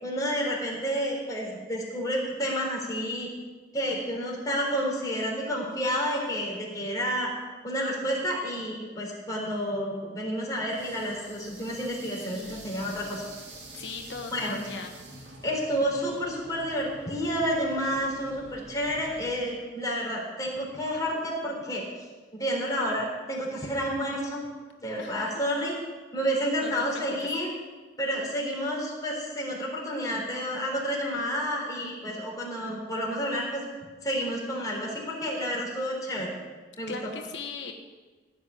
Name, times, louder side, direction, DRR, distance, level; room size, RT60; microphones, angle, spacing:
voice 1, 0.0-3.3 3.7-7.3 7.6-13.2 14.3-14.6 15.4-21.8 22.3-24.5 24.8-25.8 26.1-27.5 28.0-33.6 34.0-36.3 36.8-36.9, equal, 20° left, -2 dB, 3.9 m, -30 dB
sound 1, 10.7-19.3, right 1 dB, 80° right, 3.0 m, -47 dB
voice 2, 12.3-12.7 13.7-14.9 25.0-25.4 26.6-27.2 36.9-37.7, left 4 dB, 90° left, 4 dB, 1.2 m, -39 dB
15.5 x 6.4 x 9.7 m, 1.3 s
head